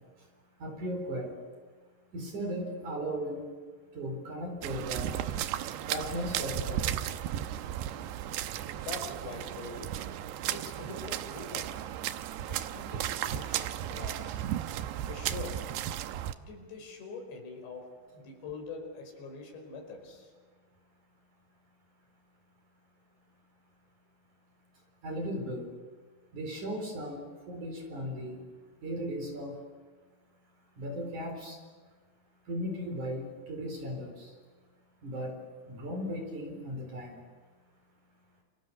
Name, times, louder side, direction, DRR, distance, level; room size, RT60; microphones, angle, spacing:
voice 1, 0.6-1.3 2.1-3.5 3.9-5.2 5.9-7.0 25.0-25.7 26.3-28.4 28.8-29.6 30.8-31.6 32.5-34.3 35.0-35.4 35.7-37.2, equal, 45° right, 4 dB, 5.4 m, -36 dB
sound 1, 4.6-16.3, right 11 dB, 80° right, 3.0 m, -35 dB
voice 2, 8.8-10.1 10.5-12.0 12.5-14.5 15.0-15.8 16.4-20.3, left 4 dB, 85° left, 3 dB, 7.2 m, -44 dB
29.5 x 29.0 x 6.9 m, 1.4 s
omnidirectional pair, 4.9 m